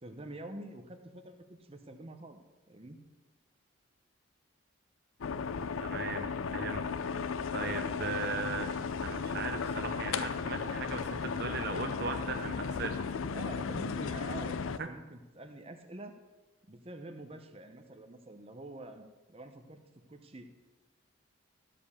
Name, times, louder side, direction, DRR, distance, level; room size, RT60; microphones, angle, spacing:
voice 1, 0.0-2.4 2.7-3.0 13.3-16.1 16.7-19.8 20.1-20.5, right 1 dB, 30° right, 6 dB, 0.9 m, -46 dB
sound 1, 5.2-14.8, left 5 dB, 80° left, 0.5 m, -35 dB
voice 2, 5.8-13.0 14.8-14.9, right 4 dB, 50° right, 6 dB, 0.6 m, -38 dB
13.5 x 5.1 x 7.1 m, 1.2 s
head